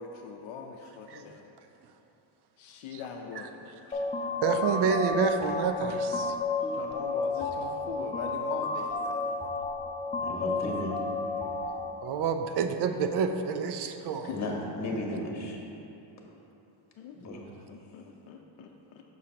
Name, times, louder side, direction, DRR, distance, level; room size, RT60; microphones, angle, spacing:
voice 1, 0.0-1.5 2.6-4.1 6.6-9.4 14.2-14.9 17.0-19.0, left 6 dB, 70° left, 2 dB, 0.6 m, -42 dB
sound 1, 3.9-11.9, left 3 dB, 15° left, 0.3 m, -31 dB
voice 2, 4.4-6.4 12.0-14.3, right 6 dB, 55° right, 7 dB, 0.5 m, -28 dB
voice 3, 10.2-10.9 14.3-14.5 14.8-15.6 17.2-17.5, left 2 dB, 35° left, -1 dB, 1.2 m, -34 dB
6.8 x 6.2 x 2.8 m, 2.8 s
cardioid pair, 110°, 49 cm